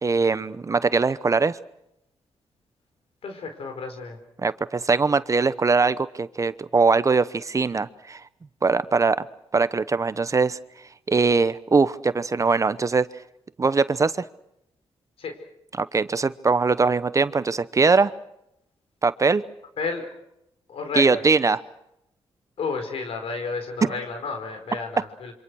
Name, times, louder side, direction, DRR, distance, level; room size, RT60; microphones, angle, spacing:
voice 1, 0.0-1.6 4.4-8.2 8.6-9.2 9.5-10.6 11.1-13.1 13.6-14.2 15.8-18.1 19.0-19.4 20.9-21.6, right 4 dB, 35° right, 15 dB, 0.9 m, -21 dB
voice 2, 3.2-4.2 15.2-15.3 19.8-20.0 20.7-21.2 22.6-25.3, left 4 dB, 75° left, 6 dB, 4.9 m, -31 dB
27.0 x 25.5 x 6.4 m, 0.83 s
cardioid pair, 95°, 10 cm